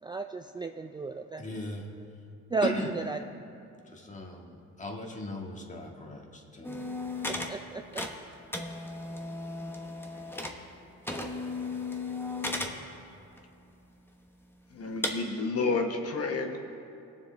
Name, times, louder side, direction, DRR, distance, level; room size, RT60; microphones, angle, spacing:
voice 1, 0.0-1.5 2.5-3.2 7.3-8.0, right 3 dB, 15° right, 6 dB, 0.3 m, -33 dB
voice 2, 1.4-1.9 2.6-2.9 3.8-7.0, left 1 dB, 25° left, 0 dB, 1.8 m, -38 dB
sound 1, 6.6-7.6 7.8-10.8 11.0-12.8 13.4-13.5 14.1-14.2 15.0-15.1, left 2 dB, 5° left, 1.1 m, -35 dB
voice 3, 14.7-16.6, left 3 dB, 50° left, 3 dB, 1.0 m, -30 dB
20.0 x 7.3 x 3.4 m, 2.6 s
cardioid pair, 90°, 30 cm